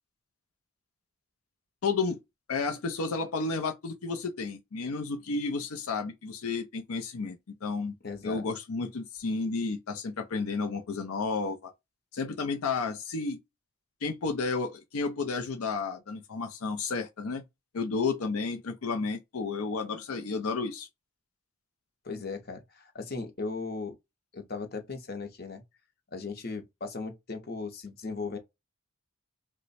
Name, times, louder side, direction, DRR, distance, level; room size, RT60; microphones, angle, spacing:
voice 1, 1.8-2.2 2.5-7.9 8.2-11.7 12.1-13.4 14.0-17.4 17.7-20.9, left 4 dB, 80° left, 0.5 m, -32 dB
voice 2, 8.0-8.4 22.0-24.0 24.3-25.6 26.1-28.4, left 4 dB, 45° left, 0.8 m, -37 dB
3.0 x 2.2 x 4.0 m
head